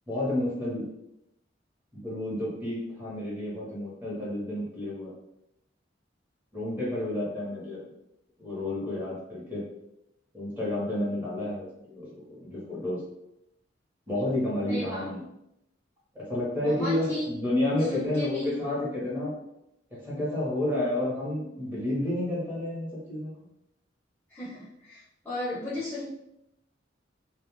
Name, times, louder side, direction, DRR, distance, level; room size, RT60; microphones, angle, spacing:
voice 1, 0.1-0.8 1.9-5.1 6.5-7.8 8.4-9.6 10.3-13.0 14.1-15.2 16.1-19.3 19.9-23.3, left 1 dB, 10° right, -7 dB, 1.0 m, -30 dB
voice 2, 14.7-15.1 16.6-17.3 17.9-18.5 24.3-26.1, left 1 dB, 10° left, -10 dB, 0.6 m, -35 dB
2.3 x 2.1 x 3.0 m, 0.82 s
head